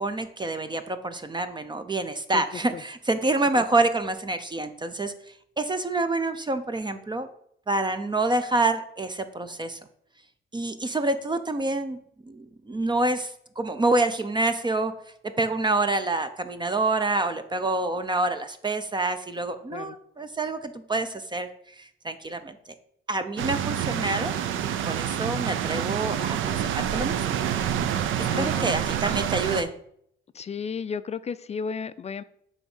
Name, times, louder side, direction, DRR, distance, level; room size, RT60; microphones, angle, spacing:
voice 1, 0.0-5.1 5.6-7.3 7.7-9.8 10.5-12.0 12.3-14.9 15.4-21.5 21.8-22.6 23.1-24.3 24.8-27.3 28.2-29.7, right 2 dB, 20° right, 10 dB, 0.6 m, -27 dB
voice 2, 2.3-2.8 3.6-3.7 19.7-20.0 28.3-28.6 30.3-32.2, left 6 dB, 35° left, 14 dB, 0.4 m, -33 dB
sound 1, 23.4-29.6, right 10 dB, 80° right, 0.6 m, -27 dB
8.3 x 3.5 x 5.4 m, 0.71 s
cardioid pair, 90°, 20 cm